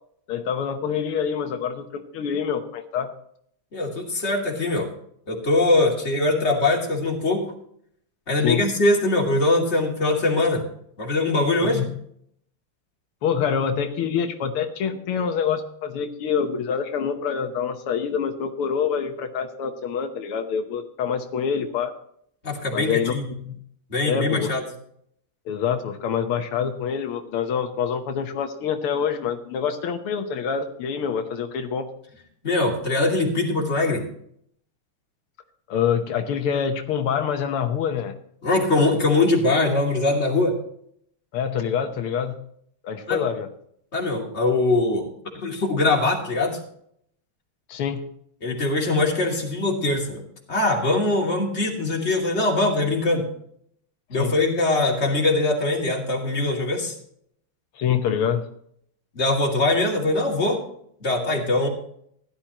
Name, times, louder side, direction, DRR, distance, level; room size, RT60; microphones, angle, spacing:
voice 1, 0.3-3.1 8.4-8.6 11.7-11.9 13.2-21.9 22.7-23.6 24.0-24.5 25.5-31.9 35.7-38.1 41.3-42.4 42.8-43.5 47.7-48.1 54.2-54.3 57.8-58.4, left 7 dB, 85° left, 5 dB, 2.0 m, -26 dB
voice 2, 3.7-4.9 5.3-7.5 8.3-10.6 11.0-11.9 22.4-23.2 23.9-24.6 32.4-34.0 38.4-40.6 43.1-43.2 43.9-45.1 45.3-46.6 48.4-53.3 54.1-57.0 59.1-60.6 61.0-61.7, left 2 dB, 30° left, 0 dB, 2.8 m, -22 dB
16.0 x 11.5 x 3.0 m, 0.67 s
omnidirectional pair, 2.4 m